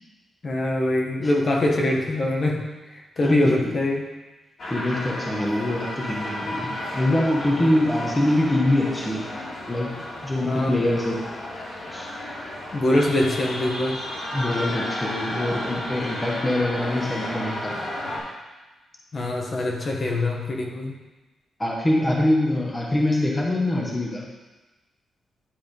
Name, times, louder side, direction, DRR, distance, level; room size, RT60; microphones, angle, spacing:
voice 1, 0.4-2.7 2.9-4.1 7.6-7.8 10.4-10.8 12.7-14.0 17.7-17.8 19.1-21.0, left 1 dB, 40° left, 0 dB, 1.1 m, -24 dB
voice 2, 3.2-3.7 4.7-9.3 9.7-9.9 10.2-11.3 11.9-12.1 14.3-17.9 21.6-24.3, left 1 dB, 15° left, -2 dB, 1.0 m, -24 dB
sound 1, 4.6-18.2, left 1 dB, 60° left, 2.4 m, -33 dB
10.0 x 3.4 x 5.2 m, 1.1 s
cardioid pair, 115°, 0 cm